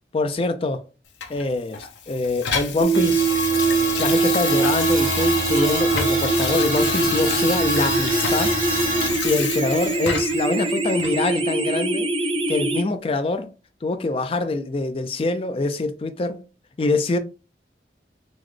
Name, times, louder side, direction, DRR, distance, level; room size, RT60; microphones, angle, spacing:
voice 1, 0.1-0.9 1.3-3.3 4.0-8.6 9.2-12.1 12.5-13.5 13.8-16.5 16.8-17.2, left 3 dB, 30° left, 0.3 m, -24 dB
Water tap faucet / Sink (filling or washing), 1.2-10.5 11.0-11.1, left 7 dB, 80° left, 0.6 m, -29 dB
sound 1, 2.8-12.8, right 4 dB, 30° right, 0.5 m, -23 dB
sound 2, 2.9-9.1, right 1 dB, 45° right, 0.9 m, -28 dB
3.8 x 2.1 x 3.1 m
head